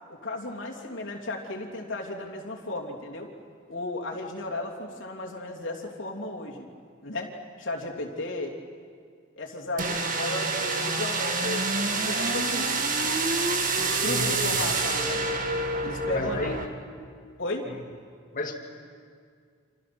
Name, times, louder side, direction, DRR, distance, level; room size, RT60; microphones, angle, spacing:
voice 1, 0.1-3.3 3.7-6.7 7.0-7.3 7.6-8.6 9.4-12.8 13.7-15.2 15.8-16.4 17.4-17.7, left 2 dB, 70° left, -1 dB, 3.1 m, -34 dB
sound 1, 9.8-16.7, right 3 dB, 45° right, 1.9 m, -27 dB
voice 2, 14.0-14.6 16.1-16.6 18.3-18.6, left 2 dB, 45° left, 4 dB, 2.3 m, -32 dB
30.0 x 27.0 x 6.1 m, 2.1 s
head